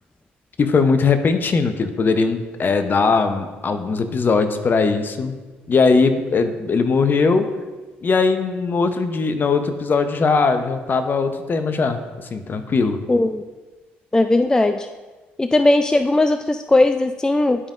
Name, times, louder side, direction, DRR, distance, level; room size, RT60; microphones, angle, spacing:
voice 1, 0.6-5.4 5.7-7.5 8.0-13.0, left 4 dB, 45° left, 8 dB, 0.7 m, -19 dB
voice 2, 13.1-13.4 14.1-14.9 15.4-17.7, left 2 dB, 15° left, 9 dB, 0.3 m, -18 dB
11.0 x 5.2 x 2.5 m, 1.3 s
hypercardioid pair, 60°, 5 cm